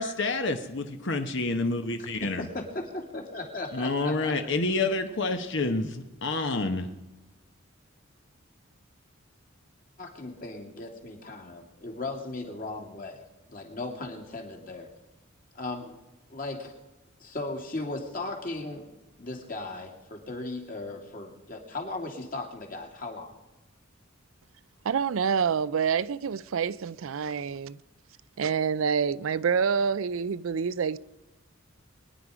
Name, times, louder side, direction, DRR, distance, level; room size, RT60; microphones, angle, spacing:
voice 1, 0.0-2.4 3.7-6.9, left 3 dB, 60° left, 1.1 m, -28 dB
voice 2, 2.0-2.7 3.1-4.3 10.0-13.2 13.5-14.9 15.5-16.0 16.3-16.7 17.2-18.9 19.2-23.3, left 2 dB, 40° left, 2.4 m, -37 dB
voice 3, 24.8-27.8 28.4-31.0, right 6 dB, 75° right, 0.4 m, -27 dB
23.5 x 10.0 x 4.9 m
head